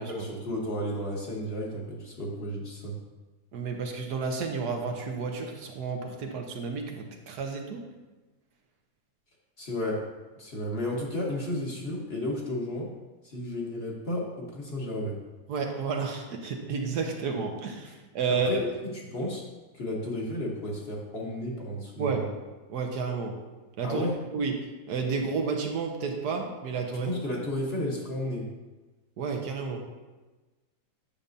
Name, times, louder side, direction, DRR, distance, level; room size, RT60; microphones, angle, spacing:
voice 1, 0.1-3.0 9.6-10.1 10.4-12.9 13.2-15.2 18.3-19.4 19.7-22.3 23.8-24.2 26.9-28.5, left 1 dB, 40° left, -3 dB, 1.3 m, -33 dB
voice 2, 3.5-7.8 15.5-18.6 22.0-22.3 22.7-23.3 23.8-24.1 24.3-24.5 24.9-27.1 29.2-29.8, right 4 dB, 80° right, 3 dB, 1.4 m, -31 dB
8.5 x 6.7 x 2.6 m, 1.2 s
omnidirectional pair, 1.7 m